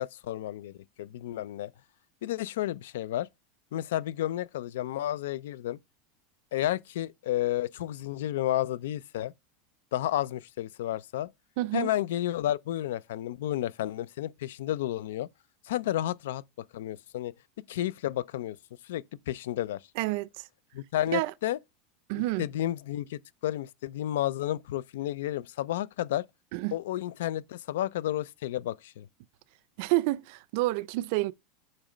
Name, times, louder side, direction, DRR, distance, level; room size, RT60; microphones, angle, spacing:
voice 1, 0.0-1.7 2.2-3.3 3.7-5.8 6.5-9.3 9.9-11.3 11.7-15.3 15.6-16.4 16.7-17.3 17.7-18.6 18.8-19.8 20.7-21.6 22.4-26.3 26.7-29.1, left 13 dB, 90° left, 0.4 m, -31 dB
voice 2, 11.6-11.9 20.0-20.4 21.1-21.3 22.1-22.5 26.5-26.8 29.8-31.3, right 19 dB, 60° right, 0.4 m, -29 dB
8.8 x 3.2 x 5.0 m
supercardioid pair, 155°, 0 cm